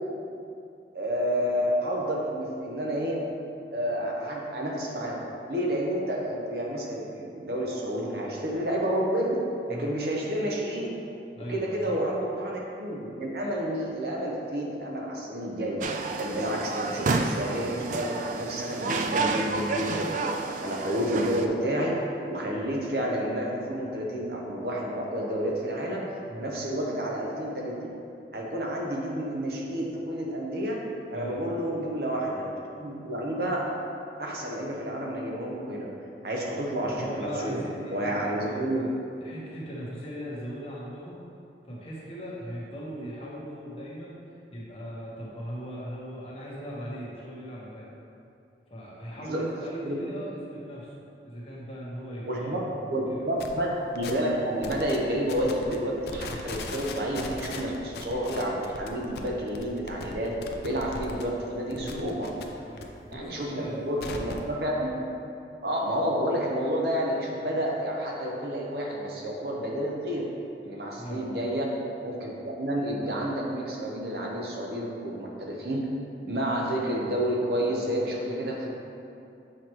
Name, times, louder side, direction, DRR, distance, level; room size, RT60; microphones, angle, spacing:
voice 1, 0.9-3.2 3.7-5.2 5.5-9.4 9.7-10.9 11.5-15.8 16.2-20.3 20.6-22.0 22.2-26.0 26.4-27.7 28.3-30.8 31.1-32.5 32.8-33.7 34.2-35.9 36.2-37.6 37.9-38.8 49.2-49.4 49.9-50.0 52.2-52.6 52.9-60.3 60.6-62.3 63.1-64.9 65.6-70.3 70.6-71.7 72.0-75.9 76.2-78.7, equal, 60° right, -3 dB, 0.9 m, -30 dB
voice 2, 11.3-12.0 26.3-26.5 31.1-31.6 37.0-38.9 39.2-41.2 41.6-44.1 44.5-47.9 48.7-50.9 51.2-53.2 61.8-62.1 62.6-63.8 71.0-71.3, equal, 35° left, -6 dB, 1.2 m, -39 dB
sound 1, 15.8-21.5, right 3 dB, 45° right, 0.3 m, -30 dB
sound 2, 53.4-53.5 53.9-54.3 54.6-55.0 55.3-55.8 56.0-61.2 61.6-62.8 63.1-64.5, left 3 dB, 65° left, 0.5 m, -39 dB
7.5 x 4.6 x 3.1 m, 2.6 s
head